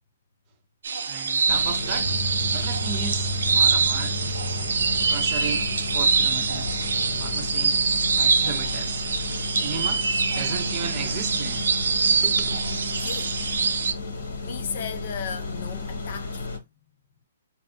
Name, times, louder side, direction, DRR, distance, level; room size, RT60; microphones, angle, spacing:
sound 1, 0.8-13.9, right 5 dB, 80° right, 0.5 m, -24 dB
voice 1, 1.0-2.1 2.5-4.2 5.0-6.9 7.2-7.8 8.2-9.0 9.5-11.7 12.2-12.6, right 7 dB, 30° right, 0.6 m, -35 dB
sound 2, 1.5-16.6, left 3 dB, 80° left, 1.4 m, -33 dB
sound 3, 2.0-12.9, right 1 dB, 15° left, 0.9 m, -36 dB
voice 2, 12.9-13.6 14.4-16.6, left 7 dB, 50° left, 0.5 m, -36 dB
3.3 x 2.5 x 2.6 m
hypercardioid pair, 160°, 0 cm